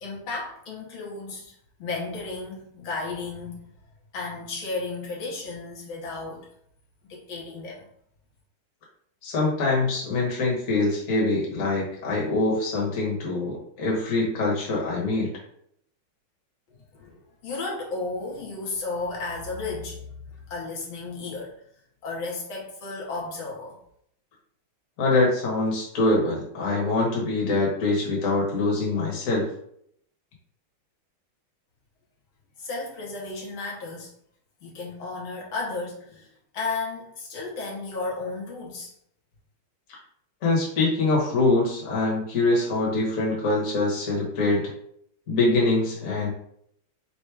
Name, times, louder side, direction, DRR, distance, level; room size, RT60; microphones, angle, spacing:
voice 1, 0.0-1.5 1.8-3.6 4.1-6.5 7.1-7.9 16.9-17.2 17.4-20.0 20.5-21.5 22.0-23.8 32.6-34.1 34.6-36.3 36.5-38.9, left 3 dB, 75° left, -3 dB, 1.8 m, -33 dB
voice 2, 9.2-15.3 25.0-29.4 40.4-44.6 45.3-46.3, left 2 dB, 45° left, -3 dB, 1.4 m, -24 dB
4.5 x 2.1 x 4.6 m, 0.68 s
omnidirectional pair, 2.2 m